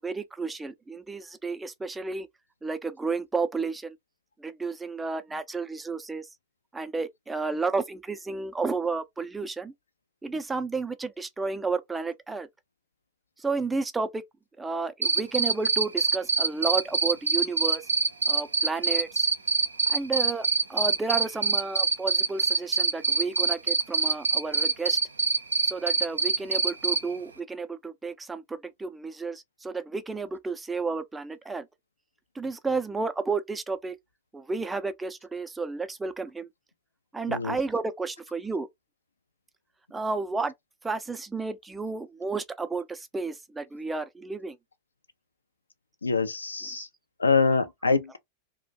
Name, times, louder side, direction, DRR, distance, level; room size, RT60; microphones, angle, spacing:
voice 1, 0.0-2.3 2.6-4.0 4.4-6.3 6.7-9.7 10.2-12.5 13.4-14.2 14.6-17.8 18.3-19.3 19.9-25.0 25.7-31.7 32.4-34.0 34.3-36.5 37.1-38.7 39.9-40.5 40.8-44.6 46.6-46.8, right 4 dB, 10° right, 0.3 m, -32 dB
Cricket, 15.0-27.0, right 4 dB, 75° right, 0.4 m, -23 dB
voice 2, 46.0-46.9 47.2-48.2, left 4 dB, 80° left, 0.3 m, -25 dB
2.4 x 2.1 x 2.6 m
figure-of-eight pair, 90°, 0 cm